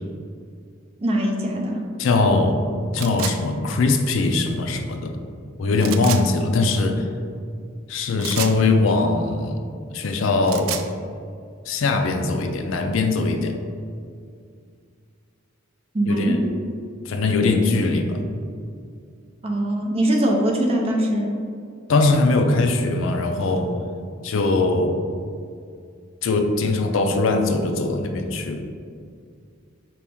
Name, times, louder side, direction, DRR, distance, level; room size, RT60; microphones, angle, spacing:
voice 1, 1.0-1.8 15.9-16.3 19.4-21.3, right 1 dB, 30° right, 0 dB, 0.5 m, -22 dB
voice 2, 2.0-2.6 2.9-5.2 5.6-7.1 7.9-9.6 9.9-10.8 11.7-13.6 16.1-16.4 17.1-18.2 21.9-23.7 24.2-24.9 26.2-28.6, left 3 dB, 70° left, 5 dB, 0.4 m, -21 dB
sound 1, 3.0-3.4 5.8-6.2 8.2-8.6 10.3-10.9, right 9 dB, 90° right, 0.3 m, -30 dB
5.0 x 2.9 x 3.5 m, 2.3 s
head